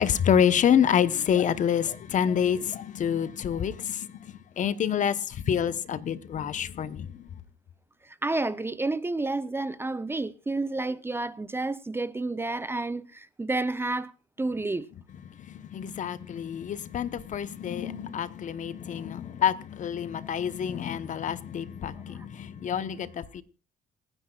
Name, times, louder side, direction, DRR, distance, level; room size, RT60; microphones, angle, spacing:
voice 1, 0.0-7.3 15.2-23.4, left 8 dB, 50° left, 1.0 m, -27 dB
voice 2, 8.2-14.1 14.4-14.9, right 2 dB, 15° right, 0.6 m, -30 dB
27.5 x 10.0 x 2.4 m
cardioid pair, 110°, 17 cm